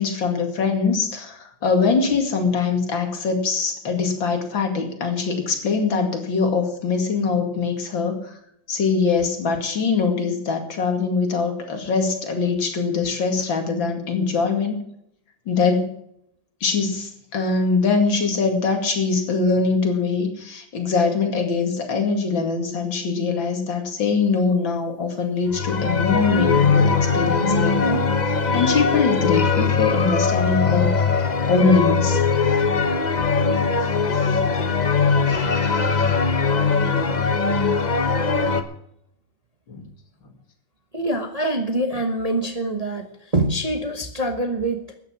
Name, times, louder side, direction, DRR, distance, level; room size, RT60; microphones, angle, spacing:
voice 1, 0.0-8.3 8.7-14.8 15.5-15.9 16.6-31.2 31.5-32.2 39.7-39.8, left 4 dB, 70° left, 4 dB, 3.0 m, -22 dB
sound 1, 25.5-38.6, left 4 dB, 35° left, 0.7 m, -20 dB
voice 2, 40.9-44.9, right 1 dB, 25° right, 5 dB, 1.0 m, -25 dB
13.5 x 9.6 x 6.1 m, 0.72 s
omnidirectional pair, 2.2 m